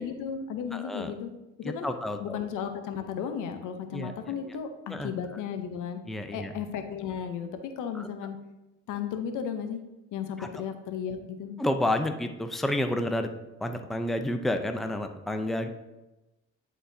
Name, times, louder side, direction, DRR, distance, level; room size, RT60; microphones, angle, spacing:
voice 1, 0.0-1.3 1.6-1.9 2.2-6.0 6.3-8.4 8.9-9.8 10.1-11.5, left 7 dB, 85° left, 7 dB, 0.8 m, -34 dB
voice 2, 0.7-1.1 1.6-2.4 3.9-4.1 4.4-4.5 4.9-5.1 6.1-6.5 7.9-8.1 10.4-10.5 11.6-13.3 13.6-15.7, left 1 dB, ahead, 6 dB, 0.5 m, -30 dB
10.0 x 4.1 x 2.7 m, 1.0 s
cardioid pair, 90°, 30 cm